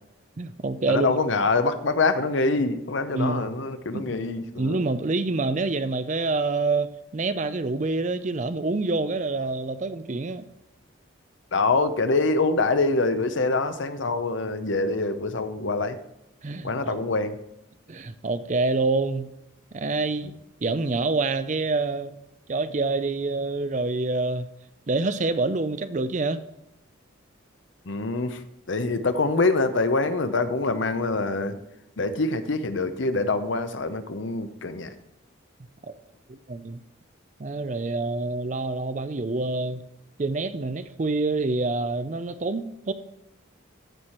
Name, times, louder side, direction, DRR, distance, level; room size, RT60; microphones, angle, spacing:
voice 1, 0.4-1.2 3.1-3.5 3.9-4.1 4.6-10.5 16.4-17.1 17.9-19.3 19.7-22.1 22.5-24.5 24.9-26.4 35.9-36.0 36.3-36.8 37.4-39.8 40.2-42.9, right 3 dB, 35° right, 0.5 m, -27 dB
voice 2, 0.9-4.8 11.5-16.0 16.6-17.4 27.9-28.4 28.7-31.6 32.0-35.0, left 3 dB, 70° left, 0.7 m, -25 dB
14.0 x 4.8 x 4.3 m
head